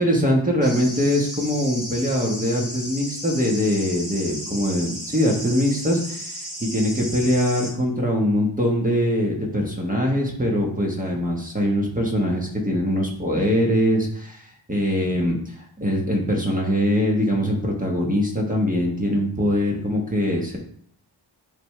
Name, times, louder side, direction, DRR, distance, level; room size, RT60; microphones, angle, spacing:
voice 1, 0.0-20.6, equal, 15° right, -1 dB, 1.3 m, -22 dB
sound 1, 0.6-7.7, equal, ahead, 2.6 m, -34 dB
10.5 x 3.6 x 3.2 m, 0.63 s
wide cardioid pair, 130°, 46 cm